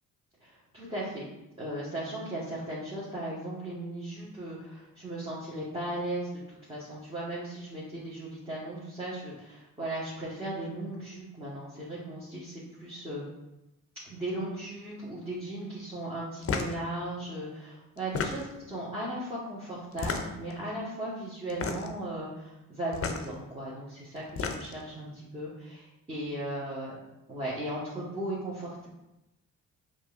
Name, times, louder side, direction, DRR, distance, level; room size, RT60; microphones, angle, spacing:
voice 1, 0.4-1.3 1.6-13.2 14.0-18.4 18.7-26.9 27.3-28.9, right 1 dB, 15° right, -9 dB, 1.5 m, -37 dB
sound 1, 16.4-16.8 18.0-18.7 19.9-20.5 21.5-22.0 22.9-23.2 24.2-24.8, left 5 dB, 40° left, 0.5 m, -32 dB
5.1 x 2.7 x 2.6 m, 0.93 s
cardioid pair, 70°, 35 cm